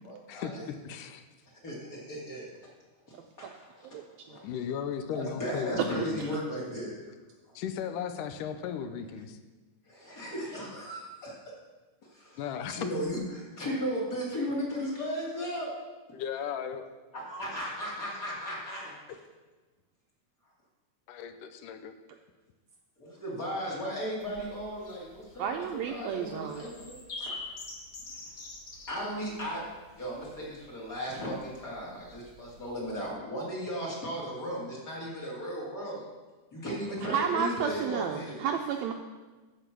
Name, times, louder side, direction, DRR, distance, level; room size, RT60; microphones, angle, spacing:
voice 1, 0.0-0.7 1.6-2.5 3.1-3.9 4.3-4.4 4.9-6.9 9.9-11.0 12.1-15.7 17.1-19.2 23.0-27.4 28.9-29.6 30.0-36.0 36.5-38.4, equal, 25° left, -4 dB, 2.9 m, -36 dB
voice 2, 0.9-1.2 4.4-6.2 7.6-9.4 12.4-12.9 16.1-16.9 21.1-21.9, left 8 dB, 85° left, 9 dB, 2.3 m, -36 dB
sound 1, 24.2-33.1, left 3 dB, 45° left, 1.2 m, -47 dB
voice 3, 25.4-26.6 37.1-38.9, right 7 dB, 80° right, 4 dB, 1.6 m, -31 dB
14.0 x 5.1 x 6.0 m, 1.3 s
omnidirectional pair, 3.7 m